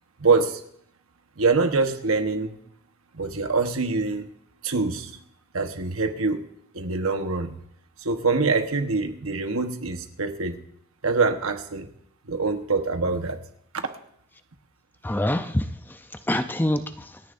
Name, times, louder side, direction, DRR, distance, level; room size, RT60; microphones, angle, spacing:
voice 1, 0.2-0.6 1.4-2.6 3.1-4.3 4.6-5.1 5.5-6.4 6.7-7.5 8.0-10.6 11.0-11.9 12.3-13.4, right 4 dB, 85° right, 6 dB, 1.2 m, -24 dB
voice 2, 15.0-17.2, left 1 dB, 10° left, 9 dB, 0.6 m, -26 dB
27.0 x 10.0 x 2.6 m, 0.70 s
head